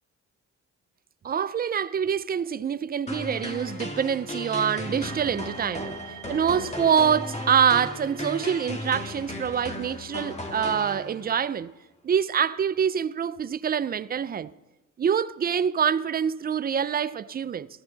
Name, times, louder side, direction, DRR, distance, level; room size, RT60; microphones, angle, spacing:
voice 1, 1.2-6.0 6.3-11.7 12.0-14.5 15.0-17.7, right 8 dB, 30° right, 0.4 m, -25 dB
sound 1, 3.1-11.4, left 1 dB, 20° left, 2.0 m, -35 dB
sound 2, 5.1-9.3, right 10 dB, 75° right, 1.3 m, -45 dB
15.0 x 14.0 x 4.0 m
cardioid pair, 90°, 30 cm